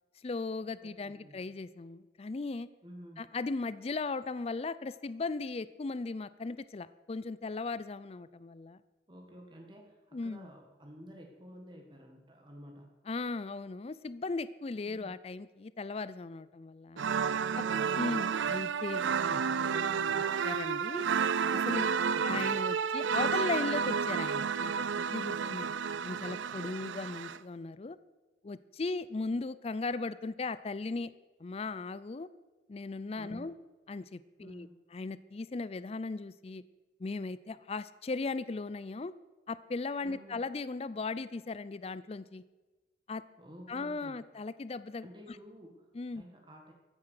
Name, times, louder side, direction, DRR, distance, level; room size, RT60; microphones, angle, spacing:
voice 1, 0.2-2.7 3.2-8.8 10.1-10.5 13.1-17.0 17.5-17.6 18.0-21.1 21.5-21.9 22.2-25.7 26.0-28.0 28.4-31.1 31.4-32.3 32.7-33.5 33.9-36.6 37.0-39.1 39.5-42.4 43.1-43.2 43.7-45.4 45.9-46.2, left 3 dB, 35° left, 16 dB, 0.4 m, -37 dB
voice 2, 0.8-1.4 2.8-3.2 9.1-12.9 14.8-15.1 17.3-18.0 21.9-22.4 25.4-25.9 33.2-33.5 34.4-34.8 40.0-40.4 43.4-44.3 45.0-46.7, equal, 25° right, 1 dB, 1.8 m, -51 dB
sound 1, 17.0-27.4, right 6 dB, 90° right, 0.5 m, -31 dB
14.5 x 9.8 x 6.5 m, 1.2 s
head